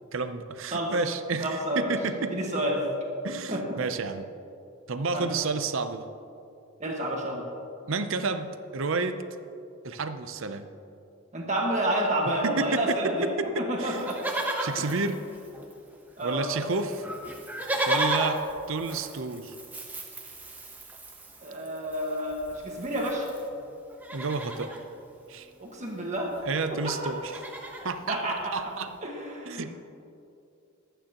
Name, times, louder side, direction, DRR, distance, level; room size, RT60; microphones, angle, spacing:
voice 1, 0.1-2.5 3.2-4.3 4.9-6.1 7.9-9.2 9.8-10.7 12.4-13.0 13.8-14.0 14.6-15.2 16.2-17.0 17.9-18.4 18.7-19.5 24.1-24.7 25.3-25.5 26.5-27.4 27.8-28.2 28.5-28.9 29.5-29.8, right 4 dB, 65° right, 9 dB, 0.6 m, -30 dB
voice 2, 1.4-2.0 2.3-2.8 3.5-3.6 5.1-5.2 6.8-7.4 11.3-14.2 16.2-16.5 17.9-18.1 21.4-23.3 25.6-26.4 26.8-27.1 28.1-28.5 29.0-29.8, right 1 dB, 30° right, -1 dB, 1.6 m, -29 dB
Livestock farm animals working animals, 13.9-15.9 16.2-16.3 16.5-23.5 23.9-24.8 26.0-26.1 26.3-26.6 26.9-27.9 28.5-28.6, right 1 dB, 10° right, 0.9 m, -34 dB
22.5 x 9.1 x 3.0 m, 2.7 s
head